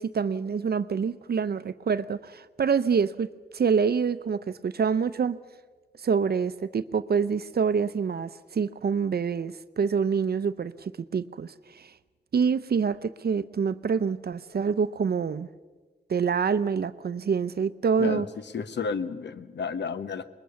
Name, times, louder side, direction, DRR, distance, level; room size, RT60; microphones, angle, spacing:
voice 1, 0.0-3.3 3.5-5.4 6.0-11.9 12.3-15.5 16.1-18.3, right 6 dB, 65° right, 0.6 m, -26 dB
voice 2, 18.5-20.2, left 5 dB, 90° left, 0.9 m, -31 dB
21.5 x 21.0 x 7.0 m
cardioid pair, 55°, 18 cm